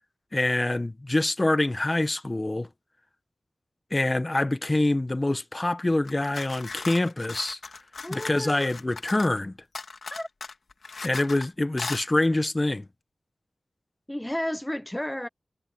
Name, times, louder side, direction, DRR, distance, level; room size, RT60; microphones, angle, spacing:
voice 1, 0.3-2.7 3.9-7.6 8.1-9.6 11.0-12.9, left 2 dB, 25° left, 1.2 m, -25 dB
sound 1, 6.0-9.4 9.7-11.5 11.8-12.0, left 4 dB, 75° left, 2.0 m, -38 dB
voice 2, 8.0-8.7 10.1-10.3 14.1-15.3, left 1 dB, 10° left, 0.8 m, -32 dB
wide cardioid pair, 95°, 0 cm